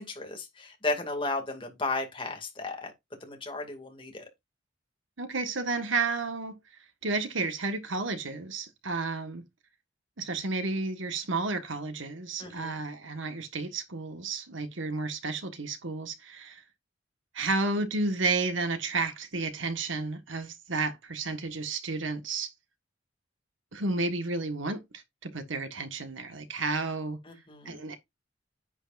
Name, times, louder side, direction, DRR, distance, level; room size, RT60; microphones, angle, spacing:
voice 1, 0.0-2.9 3.2-4.2 12.4-12.8 27.2-27.8, left 2 dB, 25° left, 2.4 m, -34 dB
voice 2, 5.2-6.6 7.0-9.4 10.2-16.6 17.3-22.5 23.7-27.2 27.6-28.0, right 3 dB, 75° right, 1.6 m, -32 dB
9.9 x 8.2 x 2.6 m
head